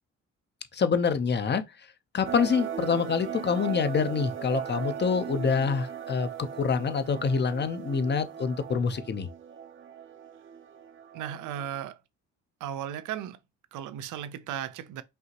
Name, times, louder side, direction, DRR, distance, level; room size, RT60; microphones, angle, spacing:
voice 1, 0.7-1.9 2.1-9.3, left 5 dB, 35° left, 0.7 m, -26 dB
Mystical adventures, 2.2-11.8, right 8 dB, 40° right, 0.7 m, -38 dB
voice 2, 11.1-12.0 12.6-13.4 13.7-15.0, right 10 dB, 80° right, 0.6 m, -36 dB
5.5 x 2.8 x 2.9 m
cardioid pair, 90°, 30 cm